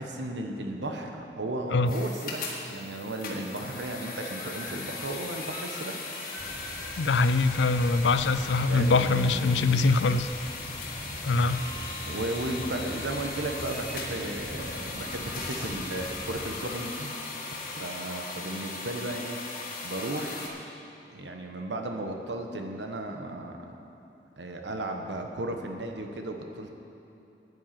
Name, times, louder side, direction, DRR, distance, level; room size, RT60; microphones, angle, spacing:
voice 1, 0.0-6.1 8.3-9.7 11.0-11.1 12.0-17.1 17.7-19.4 19.8-20.5 21.1-23.8 24.4-26.7, right 1 dB, 85° right, 3 dB, 1.2 m, -35 dB
sound 1, 1.9-20.5, left 3 dB, 50° left, 1.8 m, -38 dB
sound 2, 6.4-16.6, equal, 10° right, 0.9 m, -42 dB
voice 2, 7.0-10.3 11.2-11.6, left 3 dB, 80° left, 12 dB, 0.5 m, -23 dB
9.6 x 9.2 x 7.5 m, 2.9 s
head